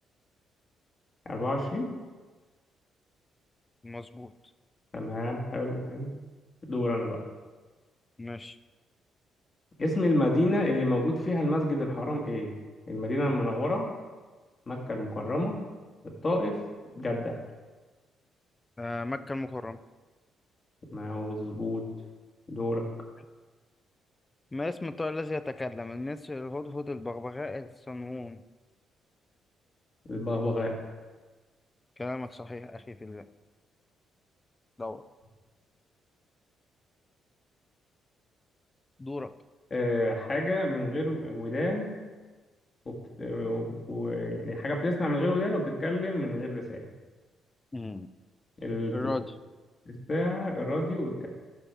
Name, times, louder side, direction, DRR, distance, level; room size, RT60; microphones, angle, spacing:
voice 1, 1.2-1.9 4.9-6.1 6.7-7.2 9.8-12.5 12.9-13.9 14.7-15.6 16.2-16.6 16.9-17.4 20.9-21.8 22.5-22.8 30.1-30.7 39.7-42.0 42.8-46.8 48.6-49.1 49.8-51.3, left 1 dB, 35° left, 0 dB, 1.6 m, -29 dB
voice 2, 3.8-4.3 8.2-8.6 18.8-19.8 24.5-28.4 32.0-33.2 34.8-35.0 39.0-39.3 47.7-48.1 48.9-49.2, left 2 dB, 20° left, 13 dB, 0.4 m, -35 dB
11.0 x 5.6 x 3.4 m, 1.3 s
cardioid pair, 90°, 0 cm